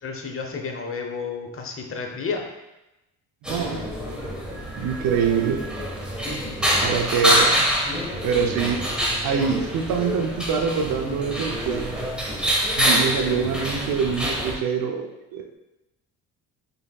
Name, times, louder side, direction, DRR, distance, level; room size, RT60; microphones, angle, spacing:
voice 1, 0.0-2.5 6.4-7.3, left 5 dB, 35° left, 3 dB, 0.8 m, -32 dB
sound 1, 3.4-14.5, equal, ahead, 1.2 m, -25 dB
voice 2, 3.4-3.8 4.8-5.6 6.8-7.7 8.2-11.9 12.8-15.5, right 6 dB, 65° right, 4 dB, 0.7 m, -25 dB
5.4 x 3.4 x 2.3 m, 0.97 s
supercardioid pair, 70°, 37 cm